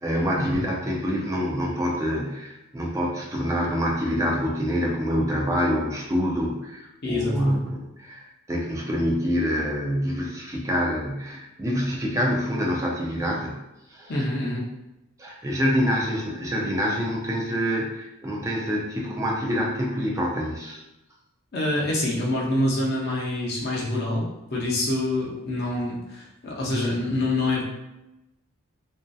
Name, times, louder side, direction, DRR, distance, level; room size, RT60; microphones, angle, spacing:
voice 1, 0.0-13.6 13.9-14.1 15.2-20.8, equal, 15° right, -2 dB, 0.4 m, -26 dB
voice 2, 7.0-7.6 14.1-14.7 21.5-27.6, left 1 dB, 50° left, -4 dB, 0.6 m, -26 dB
2.6 x 2.3 x 2.2 m, 0.93 s
head